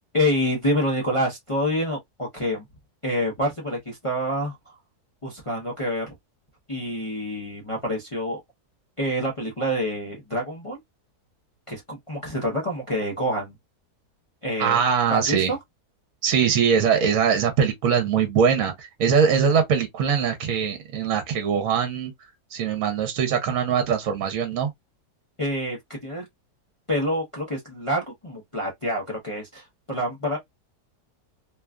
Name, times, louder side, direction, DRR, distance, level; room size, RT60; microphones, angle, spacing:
voice 1, 0.1-2.6 3.0-4.7 5.2-6.1 6.7-8.4 9.0-10.8 11.7-13.6 14.4-14.8 15.1-15.6 25.4-26.2 26.9-30.4, equal, 35° left, 0.5 m, -27 dB
voice 2, 14.6-15.5 16.2-22.1 22.5-24.7, right 7 dB, 65° right, 1.0 m, -22 dB
3.0 x 2.3 x 2.2 m
omnidirectional pair, 1.7 m